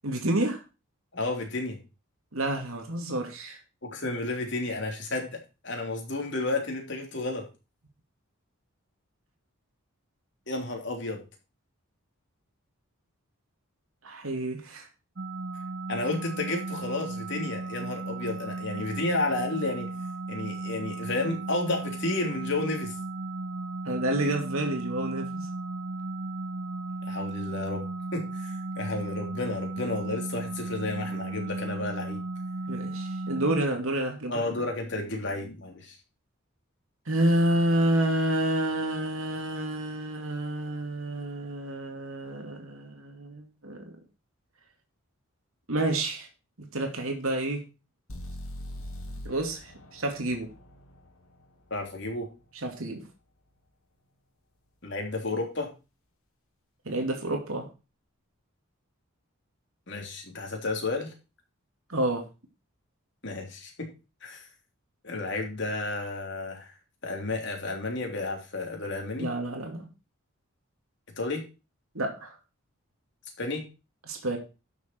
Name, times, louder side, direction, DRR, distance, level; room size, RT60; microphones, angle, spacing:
voice 1, 0.0-0.6 2.3-3.6 14.0-14.9 23.8-25.5 32.7-34.6 37.1-43.9 45.7-46.3 46.6-47.6 49.2-50.5 52.6-53.0 56.8-57.7 61.9-62.3 69.2-69.9 71.9-72.4 74.1-74.4, right 1 dB, 75° right, 3 dB, 2.5 m, -29 dB
voice 2, 1.1-1.8 3.8-7.5 10.5-11.2 15.9-19.9 20.3-23.0 27.1-27.9 28.1-32.2 34.3-35.9 51.7-52.3 54.8-55.7 59.9-61.1 63.2-63.9 64.2-64.5 65.0-66.7 67.0-69.3 71.2-71.4 73.4-73.6, left 2 dB, 55° left, 1 dB, 3.3 m, -32 dB
sound 1, 15.2-33.6, right 2 dB, 50° right, 0.9 m, -35 dB
sound 2, 48.1-52.0, left 1 dB, 75° left, 2.9 m, -42 dB
12.0 x 6.8 x 4.5 m, 0.30 s
head